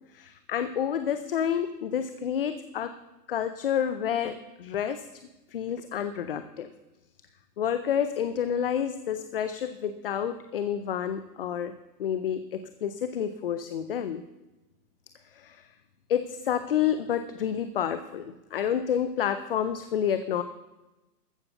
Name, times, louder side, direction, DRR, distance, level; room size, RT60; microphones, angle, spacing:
voice 1, 0.1-2.9 3.3-5.1 5.5-6.7 7.6-11.7 12.0-14.2 15.3-15.6 16.1-20.4, left 9 dB, 35° left, 11 dB, 0.5 m, -29 dB
14.5 x 6.7 x 6.9 m, 1.1 s
hypercardioid pair, 155°, 48 cm